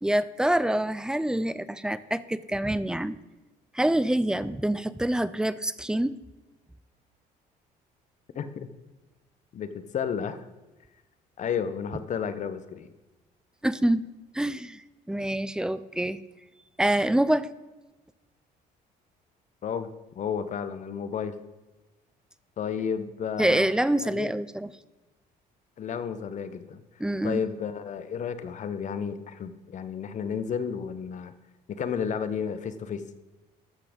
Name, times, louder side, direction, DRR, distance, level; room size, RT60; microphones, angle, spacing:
voice 1, 0.0-3.2 3.7-6.2 13.6-14.0 14.3-14.8 15.1-16.2 16.8-17.5 23.4-24.7 27.0-27.4, right 1 dB, 5° right, 15 dB, 0.4 m, -26 dB
voice 2, 8.3-8.7 9.5-10.4 11.4-12.9 19.6-19.9 20.1-21.3 22.6-23.7 24.0-24.3 25.8-26.8 27.2-31.3 31.7-33.0, left 7 dB, 45° left, 12 dB, 0.9 m, -32 dB
13.0 x 5.8 x 5.1 m, 1.1 s
cardioid pair, 110°, 17 cm